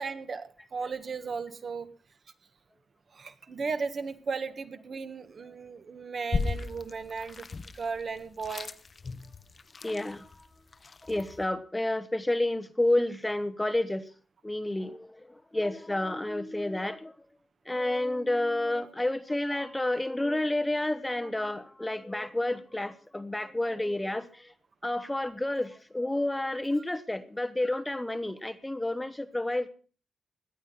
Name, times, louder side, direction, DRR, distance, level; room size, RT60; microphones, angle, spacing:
voice 1, 0.0-1.9 3.1-7.5 7.7-8.7, right 5 dB, 45° right, 10 dB, 1.7 m, -36 dB
sound 1, 6.3-11.5, left 4 dB, 35° left, 0.8 m, -36 dB
voice 2, 9.8-10.3 11.0-14.1 14.4-17.1 17.7-24.5 24.8-29.7, left 1 dB, 10° left, 13 dB, 1.0 m, -30 dB
18.0 x 11.0 x 5.8 m, 0.39 s
wide cardioid pair, 135°, 0 cm